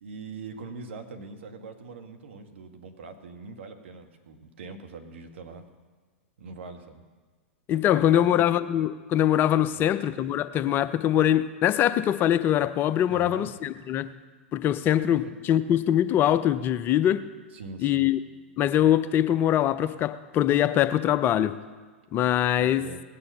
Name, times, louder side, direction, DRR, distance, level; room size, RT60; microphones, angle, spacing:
voice 1, 0.0-5.7 6.4-7.0 8.0-8.5 9.7-9.9 13.1-13.5 15.1-15.2 17.5-18.1 22.6-23.0, right 3 dB, 70° right, 1.5 m, -42 dB
voice 2, 7.7-14.1 14.5-17.3 17.8-18.2 18.6-21.6 22.1-22.9, left 11 dB, 30° left, 0.5 m, -23 dB
18.0 x 7.0 x 6.7 m
hypercardioid pair, 105°, 7 cm